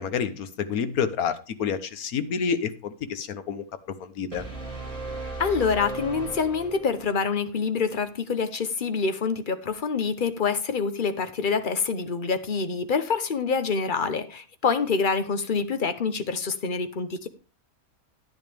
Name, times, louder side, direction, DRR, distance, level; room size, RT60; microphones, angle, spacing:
voice 1, 0.0-3.6 4.0-4.4, left 6 dB, 80° left, 12 dB, 1.4 m, -28 dB
sound 1, 4.3-7.2, right 3 dB, 20° right, 3.1 m, -36 dB
voice 2, 5.4-17.3, left 5 dB, 40° left, 11 dB, 0.9 m, -26 dB
10.5 x 10.0 x 3.4 m, 0.34 s
omnidirectional pair, 1.5 m